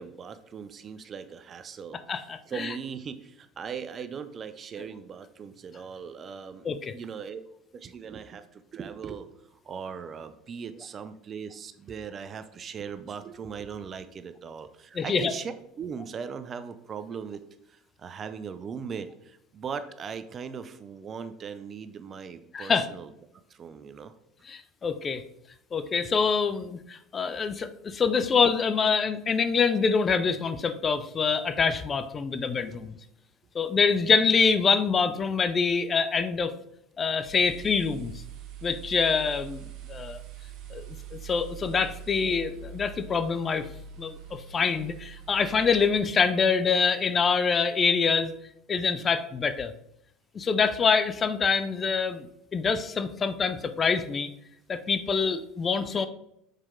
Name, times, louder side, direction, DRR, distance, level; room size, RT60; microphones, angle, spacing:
voice 1, 0.0-6.7 6.9-7.4 7.7-17.4 17.7-23.1 23.5-24.1 32.7-32.9, right 6 dB, 40° right, 11 dB, 0.6 m, -39 dB
voice 2, 2.1-2.7 6.6-6.9 15.0-15.3 22.5-22.9 24.5-25.2 25.7-33.0 33.5-36.5 37.0-38.1 38.6-40.2 40.7-40.8 41.1-43.7 44.0-48.3 48.7-49.7 50.3-52.3 52.5-54.3 54.7-56.1, left 5 dB, 35° left, 11 dB, 0.6 m, -25 dB
sound 1, 37.2-45.9, right 8 dB, 60° right, 1.3 m, -43 dB
6.6 x 4.5 x 3.7 m, 0.78 s
hypercardioid pair, 80°, 0 cm